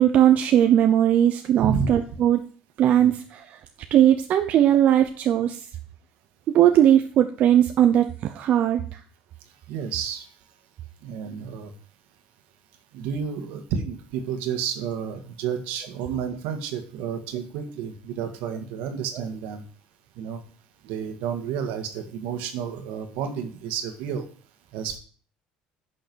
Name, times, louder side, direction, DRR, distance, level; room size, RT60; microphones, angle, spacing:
voice 1, 0.0-2.4 2.8-3.6 3.9-5.6 6.5-9.0, right 11 dB, 55° right, 7 dB, 0.8 m, -19 dB
voice 2, 9.7-10.3 11.0-11.7 12.9-19.6 20.2-20.4 20.8-24.3 24.7-25.0, right 7 dB, 80° right, 6 dB, 1.9 m, -30 dB
11.0 x 6.5 x 4.7 m, 0.42 s
cardioid pair, 110°, 3 cm